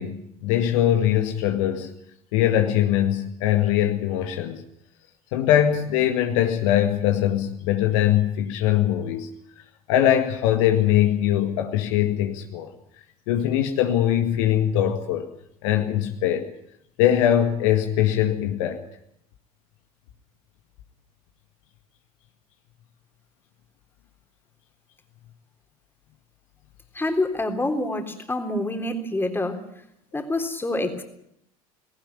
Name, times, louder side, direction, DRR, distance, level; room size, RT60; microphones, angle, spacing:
voice 1, 0.0-1.9 2.3-4.6 5.3-9.3 9.9-12.7 13.3-15.3 15.6-16.5 17.0-18.8, left 11 dB, 60° left, 6 dB, 1.9 m, -22 dB
voice 2, 26.9-29.6 30.1-31.0, left 2 dB, 10° left, 5 dB, 3.6 m, -26 dB
19.5 x 18.0 x 8.9 m, 0.74 s
figure-of-eight pair, 70°, 18 cm